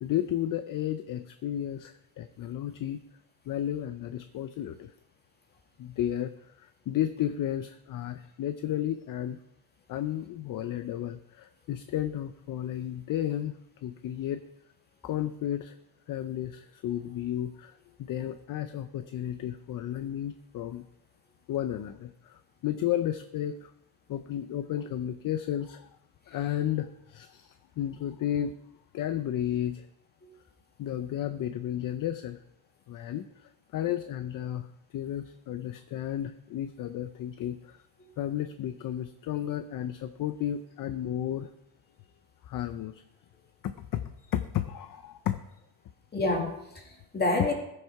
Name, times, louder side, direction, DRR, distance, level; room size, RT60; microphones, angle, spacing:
voice 1, 0.0-3.0 3.5-4.9 5.8-9.4 9.9-13.5 13.8-14.4 15.0-15.7 16.1-20.9 21.5-23.7 24.1-25.9 26.3-28.5 28.9-29.9 30.8-32.4 32.9-37.8 38.2-41.5 42.4-43.0 43.6-45.4, left 11 dB, 50° left, 11 dB, 0.6 m, -33 dB
voice 2, 46.1-47.5, left 2 dB, 25° left, 1 dB, 2.4 m, -29 dB
14.5 x 6.6 x 4.7 m, 0.84 s
cardioid pair, 140°, 40 cm